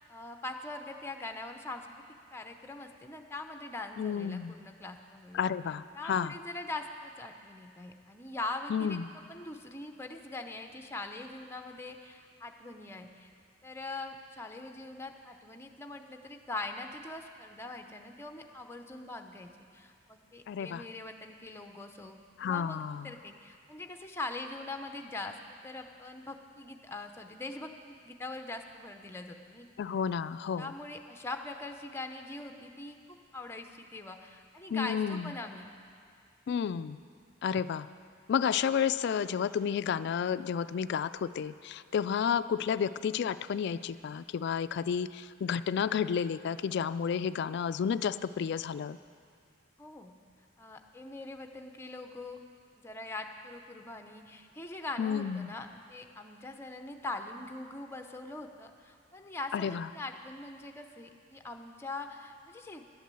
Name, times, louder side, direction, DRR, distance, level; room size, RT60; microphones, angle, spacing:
voice 1, 0.1-1.9 2.3-5.5 5.9-9.0 9.3-13.3 13.6-25.4 25.6-29.9 30.6-35.7 49.8-50.1 50.6-52.4 52.8-62.8, left 2 dB, 15° left, 5 dB, 0.7 m, -42 dB
voice 2, 4.0-4.6 5.3-6.3 8.7-9.0 20.5-20.8 22.4-23.1 29.8-30.7 34.7-35.3 36.5-37.0 37.4-37.9 38.3-49.0 55.0-55.5 59.5-59.9, left 7 dB, 60° left, 14 dB, 0.3 m, -31 dB
11.5 x 8.4 x 7.6 m, 2.3 s
head